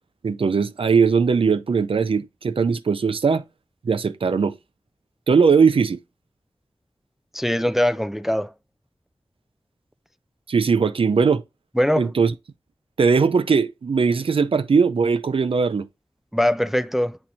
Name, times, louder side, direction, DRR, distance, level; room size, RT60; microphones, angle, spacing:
voice 1, 0.2-3.4 3.8-4.5 5.3-6.0 10.5-11.4 12.0-12.3 13.0-15.8, right 5 dB, 80° right, 0.5 m, -19 dB
voice 2, 7.3-8.5 11.8-12.1 16.3-17.2, left 1 dB, 5° right, 0.3 m, -21 dB
8.6 x 4.4 x 2.7 m
wide cardioid pair, 60°, 9 cm